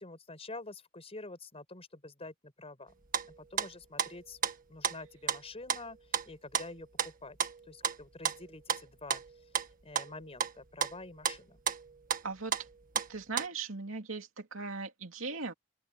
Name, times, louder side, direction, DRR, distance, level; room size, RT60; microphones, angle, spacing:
voice 1, 0.0-2.9 3.4-4.4 4.7-6.0 6.3-7.4 7.7-9.2 9.8-11.6, left 2 dB, 30° left, 5.5 m, -47 dB
sound 1, 2.9-3.7 4.0-4.6 4.8-5.4 5.7-7.1 7.4-10.5 10.8-11.4 11.7-12.2 12.5-13.5, right 7 dB, 45° right, 1.7 m, -33 dB
voice 2, 12.2-12.6 13.1-15.5, right 4 dB, 80° right, 2.7 m, -38 dB
open air
head